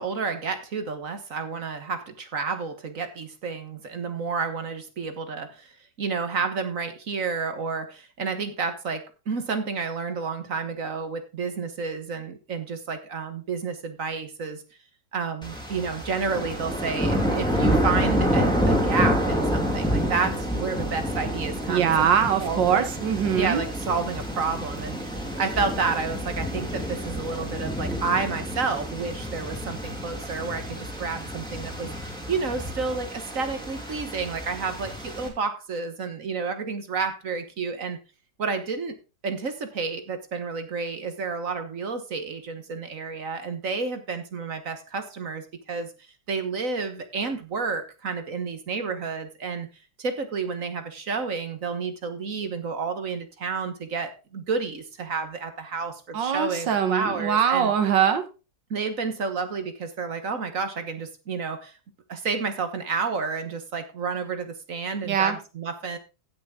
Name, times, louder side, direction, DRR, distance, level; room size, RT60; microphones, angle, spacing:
voice 1, 0.0-5.7 6.0-14.6 15.1-21.9 22.4-22.8 23.3-38.0 38.4-38.9 39.2-45.9 46.3-49.7 50.0-57.7 58.7-61.7 62.1-66.0, right 4 dB, 45° right, 8 dB, 1.4 m, -30 dB
sound 1, 15.4-35.3, equal, ahead, 2.6 m, -28 dB
voice 2, 21.7-23.6 56.1-58.2 65.0-65.4, right 8 dB, 65° right, 9 dB, 2.0 m, -22 dB
16.0 x 6.2 x 3.6 m, 0.30 s
omnidirectional pair, 2.2 m